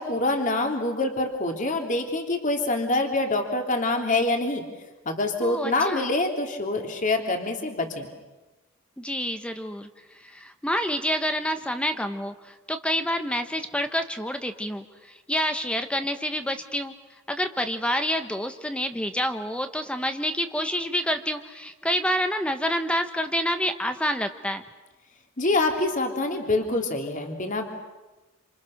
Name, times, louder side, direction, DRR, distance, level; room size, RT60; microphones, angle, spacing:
voice 1, 0.0-4.6 5.0-8.1 25.4-27.7, left 2 dB, 40° left, 3 dB, 3.1 m, -25 dB
voice 2, 5.4-6.1 9.0-24.6, equal, 5° left, 7 dB, 1.1 m, -28 dB
28.0 x 27.5 x 6.6 m, 1.1 s
head